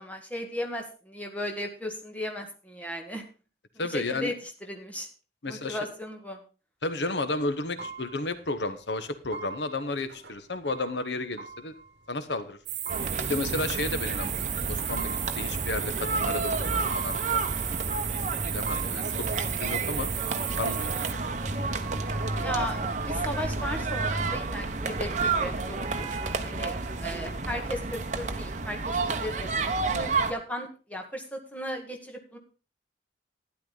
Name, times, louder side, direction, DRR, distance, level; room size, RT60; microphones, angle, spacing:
voice 1, 0.0-3.2 3.8-5.1 5.4-6.4 22.4-26.2 26.4-26.7 27.0-32.4, left 1 dB, 10° left, 2 dB, 1.8 m, -36 dB
voice 2, 3.8-4.3 5.4-5.8 6.8-11.7 12.1-12.6 13.2-17.4 18.5-19.3 19.6-20.1 20.6-20.9, left 2 dB, 75° left, 11 dB, 1.1 m, -32 dB
sound 1, 7.4-7.5 7.8-8.5 8.9-9.0 9.2-12.5 12.8-14.2 14.8-16.2 16.9-17.9 18.4-23.0 23.3-23.4 23.8-23.9 24.2-26.6, right 4 dB, 65° right, 1.4 m, -44 dB
sound 2, 12.7-21.1, right 12 dB, 90° right, 1.1 m, -34 dB
sound 3, 12.9-30.3, right 3 dB, 40° right, 1.0 m, -30 dB
12.0 x 10.0 x 4.0 m, 0.35 s
head